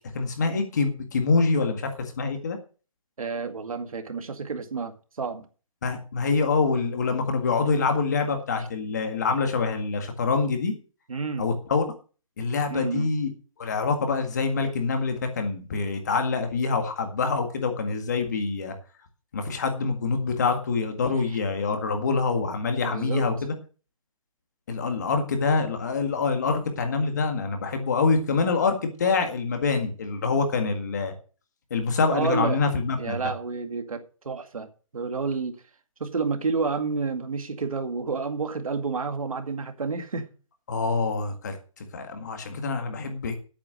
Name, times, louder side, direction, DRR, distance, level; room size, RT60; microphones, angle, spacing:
voice 1, 0.1-1.9 2.2-2.6 5.8-10.7 11.4-11.8 12.4-13.3 13.6-18.7 19.3-23.5 24.7-31.1 31.7-33.2 40.7-43.4, left 4 dB, 30° left, 1.9 m, -25 dB
voice 2, 3.2-5.5 8.6-8.7 11.1-11.5 12.7-13.1 22.8-23.4 32.1-32.6 33.0-34.7 34.9-35.6 36.0-40.3, right 4 dB, 80° right, 2.0 m, -30 dB
9.7 x 8.6 x 6.4 m
hypercardioid pair, 180°, 17 cm